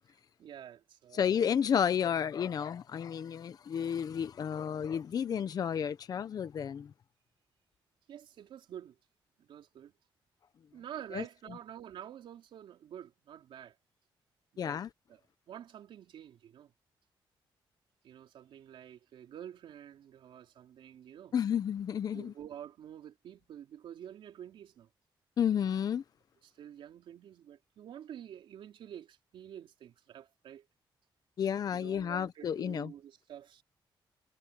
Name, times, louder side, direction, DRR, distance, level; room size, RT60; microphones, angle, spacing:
voice 1, 0.4-1.6 8.1-9.0 9.4-9.9 10.7-13.8 14.5-14.8 15.1-15.2 15.5-16.7 18.0-21.3 22.1-24.9 26.4-30.7 31.7-33.6, right 10 dB, 85° right, 3.8 m, -48 dB
voice 2, 1.1-6.9 11.1-11.2 14.6-14.9 21.3-22.3 25.4-26.0 31.4-32.9, left 8 dB, 50° left, 0.6 m, -31 dB
wide cardioid pair, 150°, 8 cm